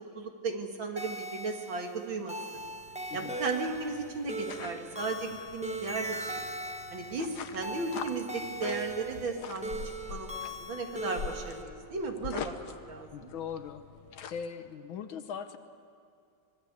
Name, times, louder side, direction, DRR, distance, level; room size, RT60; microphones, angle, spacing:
voice 1, 0.1-2.6 3.1-6.4 6.9-12.5 12.9-13.3, right 3 dB, 70° right, 3 dB, 2.9 m, -35 dB
sound 1, 1.0-11.6, right 1 dB, 5° right, 0.8 m, -40 dB
sound 2, 2.5-14.5, left 7 dB, 60° left, 1.4 m, -45 dB
voice 2, 13.1-13.8 14.3-15.6, left 7 dB, 80° left, 8 dB, 1.8 m, -40 dB
25.0 x 20.5 x 8.3 m, 2.4 s
omnidirectional pair, 2.2 m